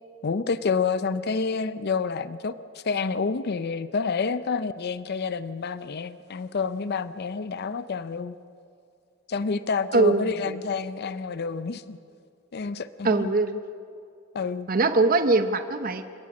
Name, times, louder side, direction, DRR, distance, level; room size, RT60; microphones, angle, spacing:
voice 1, 0.2-8.4 9.3-12.0 12.5-13.3 14.3-14.7, left 5 dB, 55° left, 14 dB, 0.5 m, -28 dB
voice 2, 9.9-10.6 13.0-13.6 14.7-16.1, right 3 dB, 45° right, 9 dB, 0.8 m, -22 dB
28.5 x 17.0 x 6.1 m, 2.4 s
head